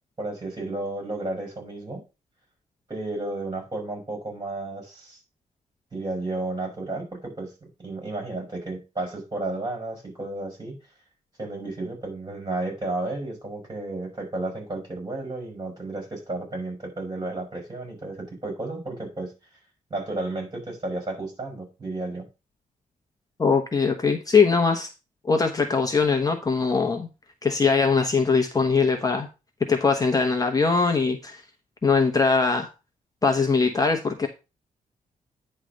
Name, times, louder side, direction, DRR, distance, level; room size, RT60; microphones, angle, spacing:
voice 1, 0.2-2.0 2.9-5.2 5.9-7.5 7.8-10.8 11.4-19.3 19.9-22.3, right 2 dB, 30° right, 0 dB, 5.1 m, -32 dB
voice 2, 23.4-24.9 25.2-27.1 27.4-29.3 29.7-31.4 31.8-32.7 33.2-34.3, left 4 dB, 25° left, 3 dB, 1.0 m, -21 dB
9.8 x 3.3 x 6.4 m, 0.29 s
wide cardioid pair, 125°, 14 cm